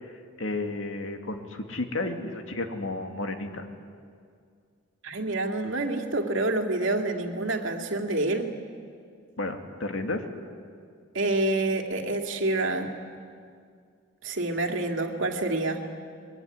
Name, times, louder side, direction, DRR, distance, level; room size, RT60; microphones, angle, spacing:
voice 1, 0.4-3.7 9.4-10.2, left 2 dB, 80° left, 5 dB, 2.3 m, -32 dB
voice 2, 5.0-8.5 11.1-12.9 14.2-15.8, right 2 dB, 70° right, 3 dB, 2.4 m, -27 dB
23.5 x 22.0 x 9.9 m, 2.2 s
head